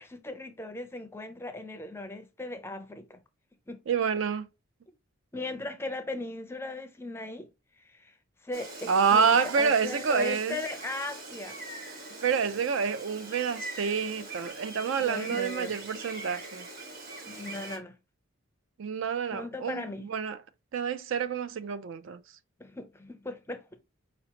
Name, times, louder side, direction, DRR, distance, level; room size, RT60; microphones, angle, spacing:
voice 1, 0.0-3.2 3.7-3.8 5.3-7.5 7.8-8.1 8.4-11.6 15.0-15.8 17.3-18.0 19.3-20.1 22.6-23.6, left 2 dB, 10° left, 0.5 m, -38 dB
voice 2, 3.9-4.5 8.9-10.6 12.2-16.7 18.8-20.4 20.7-22.2, right 6 dB, 60° right, 0.4 m, -28 dB
Gull seagull, 8.5-17.8, right 2 dB, 45° right, 1.5 m, -42 dB
5.0 x 2.9 x 2.8 m
head